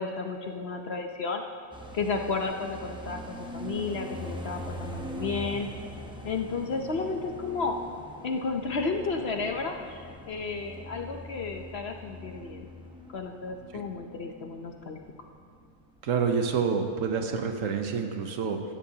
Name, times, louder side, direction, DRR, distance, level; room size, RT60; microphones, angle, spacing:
voice 1, 0.0-1.4 1.9-5.7 6.2-7.8 8.2-12.7 13.1-15.0, left 4 dB, 55° left, 4 dB, 0.9 m, -32 dB
sound 1, 1.7-16.8 17.1-17.2 17.5-18.1, equal, 5° right, 0.7 m, -43 dB
voice 2, 16.0-18.6, right 6 dB, 70° right, 5 dB, 1.2 m, -28 dB
16.5 x 12.5 x 2.8 m, 2.2 s
omnidirectional pair, 1.5 m